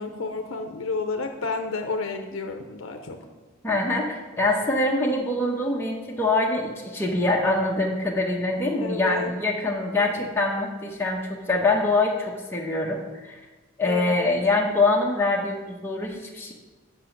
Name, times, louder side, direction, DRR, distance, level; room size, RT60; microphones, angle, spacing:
voice 1, 0.0-3.2 8.8-9.3 10.0-10.3 13.9-14.3, left 3 dB, 70° left, 4 dB, 0.7 m, -31 dB
voice 2, 3.6-13.4 13.8-16.5, left 2 dB, 10° left, -3 dB, 1.0 m, -24 dB
8.5 x 5.1 x 5.9 m, 1.2 s
head